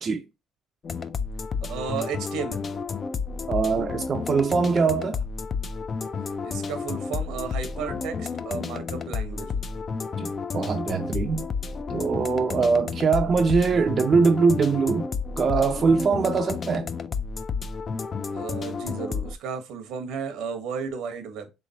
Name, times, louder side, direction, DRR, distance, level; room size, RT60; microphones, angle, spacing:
sound 1, 0.8-19.3, left 5 dB, 35° left, 0.4 m, -31 dB
voice 1, 1.7-2.7 6.4-9.6 18.3-21.5, right 6 dB, 80° right, 0.9 m, -33 dB
voice 2, 3.5-5.2 10.2-11.5 11.9-15.1 15.4-16.9, right 5 dB, 40° right, 0.4 m, -22 dB
3.6 x 3.2 x 2.7 m
cardioid pair, 105°, 0 cm